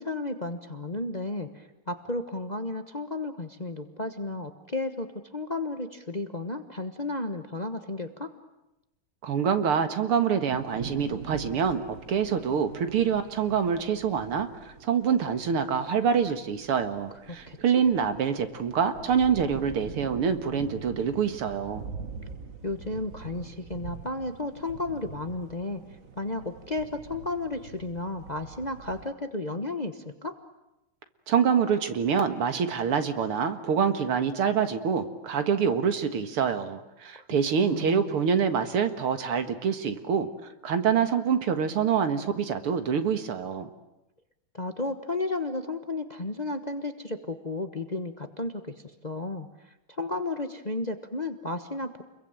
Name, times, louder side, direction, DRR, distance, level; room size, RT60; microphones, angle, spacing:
voice 1, 0.0-8.3 17.3-17.6 22.6-25.8 26.2-30.3 37.6-38.1 44.5-48.7 49.0-52.0, left 2 dB, 25° left, 8 dB, 1.0 m, -33 dB
voice 2, 9.2-14.5 14.8-21.8 31.3-40.3 40.6-43.7, right 7 dB, 80° right, 9 dB, 2.6 m, -26 dB
sound 1, 10.5-29.1, right 5 dB, 40° right, 1.8 m, -44 dB
29.5 x 22.5 x 8.9 m, 0.94 s
omnidirectional pair, 2.4 m